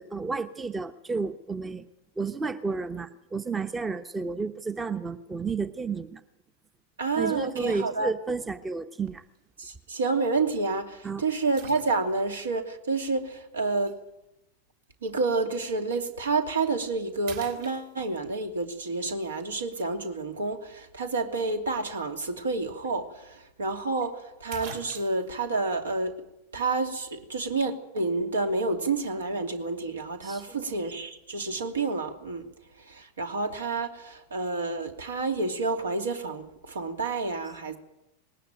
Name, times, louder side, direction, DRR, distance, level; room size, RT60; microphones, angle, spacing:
voice 1, 0.0-1.9 2.2-6.2 7.2-9.2 11.0-11.2 30.2-30.4, right 4 dB, 15° right, 12 dB, 1.0 m, -31 dB
voice 2, 7.0-8.1 9.6-13.9 15.0-26.2 26.5-32.4 32.8-37.8, right 3 dB, 70° right, 6 dB, 2.9 m, -29 dB
sound 1, 9.1-9.4 10.0-10.1 11.6-12.4 13.9-14.0 16.1-16.3 16.8-16.9 17.3-18.3 22.5-22.6 22.8-22.9 24.0-24.1 24.5-25.4, right 6 dB, 50° right, 4.0 m, -44 dB
20.5 x 19.0 x 9.3 m, 0.87 s
figure-of-eight pair, 90°, 0 cm